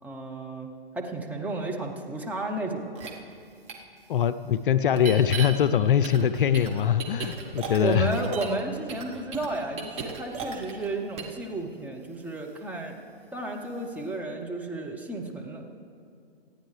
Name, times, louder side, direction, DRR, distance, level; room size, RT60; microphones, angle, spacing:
voice 1, 0.0-2.9 7.8-13.0 13.3-15.6, right 2 dB, 5° right, 0 dB, 0.7 m, -32 dB
sound 1, 3.0-3.1 3.7-3.8 4.9-5.5 6.0-8.6 8.9-10.9 11.2-11.4, right 6 dB, 20° right, 1.2 m, -36 dB
voice 2, 4.1-8.1, left 9 dB, 60° left, 13 dB, 0.5 m, -23 dB
25.0 x 9.3 x 3.2 m, 2.4 s
hypercardioid pair, 130°, 31 cm